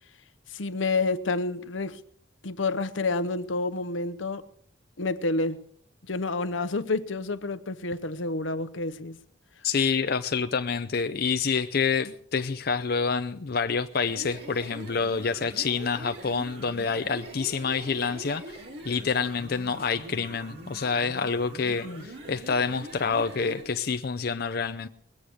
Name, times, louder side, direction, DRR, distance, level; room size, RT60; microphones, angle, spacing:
voice 1, 0.5-2.0 2.4-4.5 5.0-5.6 6.1-9.2 21.8-22.0, left 3 dB, 80° left, 0.9 m, -29 dB
voice 2, 9.6-24.9, left 5 dB, 55° left, 0.5 m, -27 dB
sound 1, 13.9-23.7, right 1 dB, 60° right, 3.2 m, -43 dB
21.5 x 8.6 x 6.4 m
head